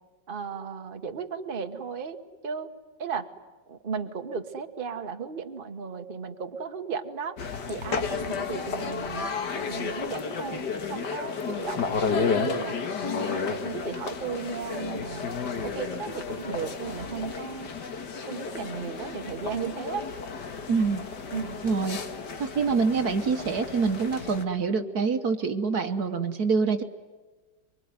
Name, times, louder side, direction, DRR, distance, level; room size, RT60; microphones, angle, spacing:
voice 1, 0.3-2.2 2.4-2.7 3.0-3.3 3.7-7.3 7.7-9.2 9.7-12.8 13.3-15.3 15.6-17.7 18.3-20.0 21.3-21.6, right 6 dB, 30° right, 5 dB, 1.4 m, -35 dB
sound 1, 7.4-24.4, left 5 dB, 65° left, 2.2 m, -32 dB
voice 2, 20.7-21.1 21.6-22.0 22.4-26.8, right 5 dB, 60° right, 7 dB, 1.5 m, -26 dB
24.5 x 24.5 x 9.6 m, 1.3 s
omnidirectional pair, 2.0 m